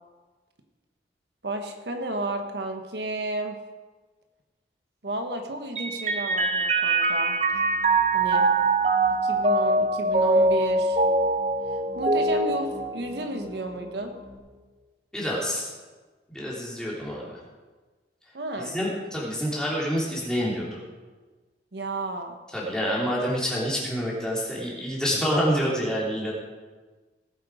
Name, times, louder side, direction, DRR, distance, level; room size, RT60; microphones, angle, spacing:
voice 1, 1.4-3.6 5.0-7.4 8.1-8.5 9.2-11.0 11.9-14.2 18.3-18.7 21.7-22.4, right 2 dB, 75° right, 5 dB, 1.2 m, -32 dB
Mallet percussion, 5.8-13.5, right 2 dB, 35° right, 0.7 m, -23 dB
sound 1, 7.5-14.4, left 1 dB, 85° left, 2.7 m, -47 dB
voice 2, 15.1-15.7 16.3-17.4 18.6-20.8 22.5-26.3, equal, 5° left, -6 dB, 3.2 m, -27 dB
18.5 x 8.1 x 5.0 m, 1.3 s
head